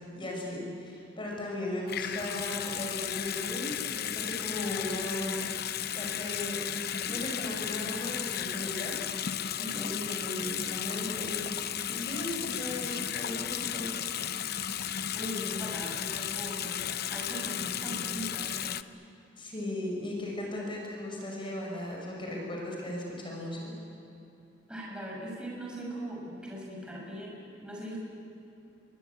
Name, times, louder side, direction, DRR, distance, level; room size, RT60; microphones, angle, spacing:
voice 1, 0.1-5.4 5.7-6.6 7.0-8.9 9.6-11.4 11.8-13.9 19.4-23.6, left 1 dB, 25° left, -1 dB, 5.9 m, -37 dB
Water tap faucet / Sink (filling or washing) / Bathtub (filling or washing), 1.9-18.8, left 10 dB, 55° left, 0.7 m, -34 dB
voice 2, 14.9-18.6 24.7-28.0, equal, 5° right, -3 dB, 6.6 m, -40 dB
28.5 x 24.0 x 8.4 m, 2.9 s
head